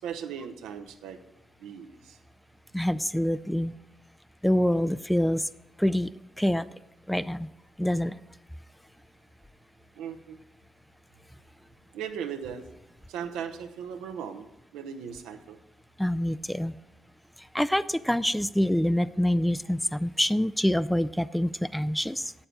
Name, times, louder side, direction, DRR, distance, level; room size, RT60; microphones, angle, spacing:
voice 1, 0.0-1.2 1.6-2.2 10.0-10.4 11.9-12.7 13.1-14.5 14.7-15.6, right 7 dB, 75° right, 7 dB, 0.7 m, -37 dB
voice 2, 2.7-3.7 4.4-5.5 5.8-6.1 6.4-6.6 7.1-7.5 7.8-8.1 16.0-16.8 17.5-22.3, equal, 5° left, 15 dB, 0.4 m, -26 dB
8.7 x 7.2 x 6.5 m, 0.90 s
hypercardioid pair, 40°, 0 cm